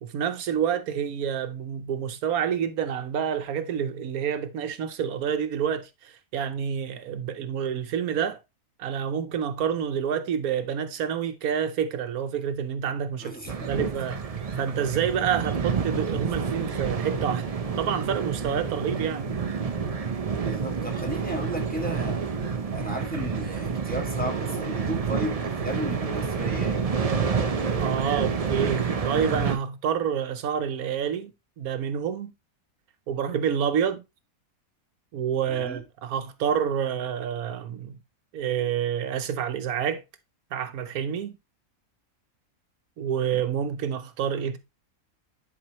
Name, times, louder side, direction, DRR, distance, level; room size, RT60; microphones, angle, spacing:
voice 1, 0.0-8.4 8.8-13.3 13.7-14.2 14.6-17.5 17.8-19.3 27.8-31.3 31.6-32.3 33.1-34.0 35.1-38.0 38.3-40.0 40.5-41.4 43.0-44.6, right 8 dB, 80° right, 1.2 m, -28 dB
voice 2, 13.2-13.7 20.4-22.3 22.7-26.9 35.5-35.8, equal, 5° left, 1.8 m, -34 dB
sound 1, 13.5-29.6, right 5 dB, 45° right, 0.5 m, -28 dB
10.5 x 4.7 x 3.0 m
omnidirectional pair, 1.5 m